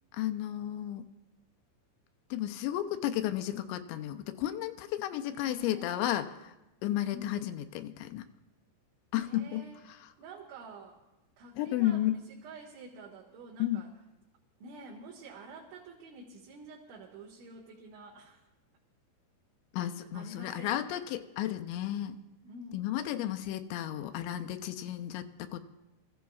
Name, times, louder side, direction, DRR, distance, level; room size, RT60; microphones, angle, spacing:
voice 1, 0.2-1.1 2.3-6.5 6.8-8.3 9.1-9.6 11.6-12.2 13.6-13.8 19.7-22.2 22.7-25.6, left 13 dB, 85° left, 8 dB, 2.9 m, -33 dB
voice 2, 5.3-6.3 7.1-7.4 9.2-9.8 10.2-11.0 11.4-13.9 14.6-18.4 20.1-20.9 22.4-22.9, right 2 dB, 90° right, -6 dB, 4.0 m, -48 dB
25.0 x 15.0 x 2.4 m, 0.99 s
omnidirectional pair, 5.2 m